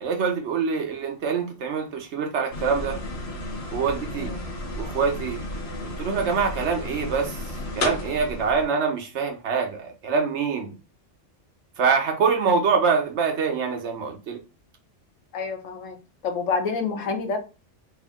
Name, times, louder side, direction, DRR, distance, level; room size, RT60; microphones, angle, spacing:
voice 1, 0.0-3.0 3.7-4.3 4.8-5.4 5.8-7.4 7.8-10.7 11.8-14.4, right 5 dB, 70° right, 0.9 m, -25 dB
sound 1, 2.5-8.7, left 1 dB, 60° left, 1.1 m, -33 dB
voice 2, 4.1-4.5 15.3-16.0 16.2-17.4, left 4 dB, 85° left, 1.1 m, -28 dB
3.4 x 2.1 x 3.5 m
omnidirectional pair, 1.3 m